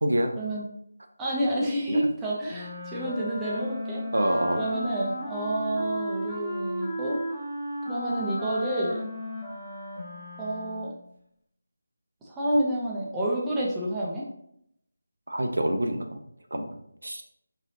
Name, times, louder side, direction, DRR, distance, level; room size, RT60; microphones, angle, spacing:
voice 1, 0.0-0.3 1.9-2.0 4.1-4.6 15.3-16.2 16.5-17.2, right 1 dB, 60° right, 5 dB, 0.5 m, -27 dB
voice 2, 1.2-4.0 4.6-7.2 7.9-9.1 10.4-10.9 12.2-14.2, right 1 dB, 10° right, -5 dB, 0.7 m, -29 dB
Wind instrument woodwind instrument, 2.5-11.0, equal, 10° left, 1.1 m, -35 dB
4.0 x 3.9 x 2.7 m, 0.73 s
figure-of-eight pair, 160°, 0 cm